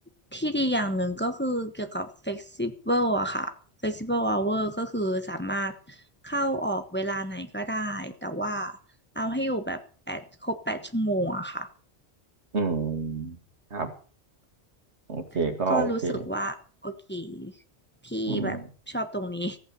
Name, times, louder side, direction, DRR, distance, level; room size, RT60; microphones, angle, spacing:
voice 1, 0.3-3.5 3.8-6.0 6.2-8.8 9.1-9.8 10.1-11.7 15.7-16.5 16.8-17.5 18.0-18.6 18.9-19.6, right 1 dB, 10° left, 8 dB, 1.2 m, -29 dB
voice 2, 12.5-13.4 13.7-13.9 15.1-16.2 18.3-18.6, right 4 dB, 75° right, 7 dB, 2.3 m, -28 dB
15.0 x 8.9 x 7.0 m, 0.41 s
omnidirectional pair, 1.1 m